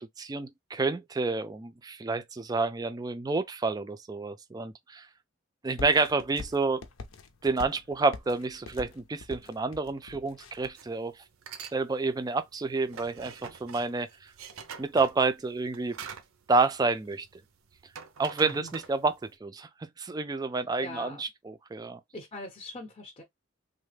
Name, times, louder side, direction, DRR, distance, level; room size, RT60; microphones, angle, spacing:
voice 1, 0.0-5.1 5.6-6.8 7.4-11.2 11.7-14.3 14.8-16.0 16.5-17.3 18.2-19.7 20.0-21.1 21.7-22.0, right 3 dB, 20° right, 0.3 m, -29 dB
sound 1, 5.8-10.8, left 3 dB, 85° left, 0.6 m, -44 dB
sound 2, 10.8-10.9 11.3-11.8 12.1-17.4 17.7-19.3, right 6 dB, 90° right, 0.6 m, -44 dB
voice 2, 18.4-18.7 20.5-21.2 22.1-23.2, left 1 dB, 25° left, 0.6 m, -42 dB
3.2 x 2.1 x 3.2 m
head